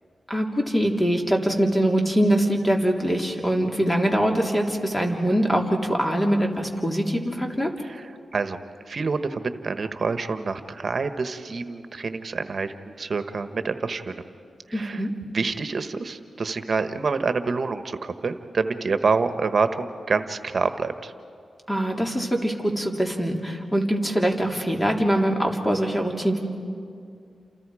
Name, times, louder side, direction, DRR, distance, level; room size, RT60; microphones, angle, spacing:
voice 1, 0.3-7.7 14.7-15.1 21.7-26.4, equal, 15° left, 1 dB, 3.3 m, -23 dB
voice 2, 8.9-14.2 14.7-15.0 15.3-21.1, right 4 dB, 55° right, 9 dB, 1.3 m, -27 dB
29.5 x 28.0 x 5.0 m, 2.4 s
cardioid pair, 65°, 0 cm